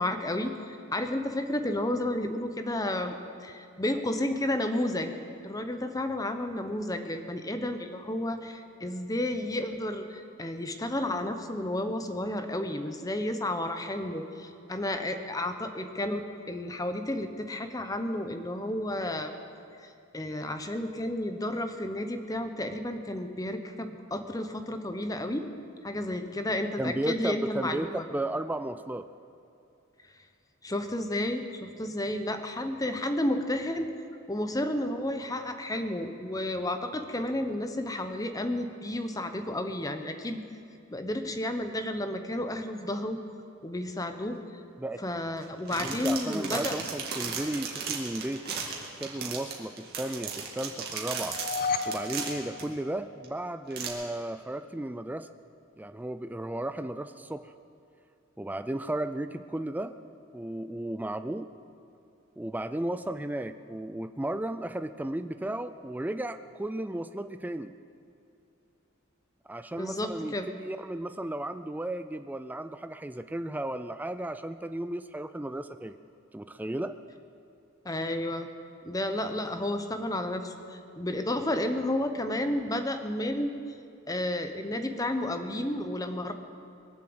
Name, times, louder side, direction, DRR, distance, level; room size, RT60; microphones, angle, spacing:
voice 1, 0.0-3.1 3.4-5.1 5.4-19.3 19.8-25.5 25.8-28.0 30.6-33.9 34.3-40.4 40.9-43.2 43.6-44.4 45.0-46.8 69.7-70.5 77.8-78.5 78.8-83.6 84.1-86.3, left 1 dB, 15° left, 7 dB, 0.9 m, -32 dB
voice 2, 26.8-29.1 44.8-45.0 45.8-48.4 49.0-51.4 51.9-55.3 55.8-57.5 58.4-60.0 60.3-61.5 62.4-67.7 69.5-76.0 76.3-77.0, right 1 dB, 10° right, 10 dB, 0.3 m, -34 dB
sound 1, 45.4-52.6 53.2-53.3 53.7-53.9, right 5 dB, 50° right, 2.2 m, -36 dB
sound 2, 51.2-53.4, left 4 dB, 45° left, 0.6 m, -34 dB
22.0 x 7.5 x 7.8 m, 2.6 s
head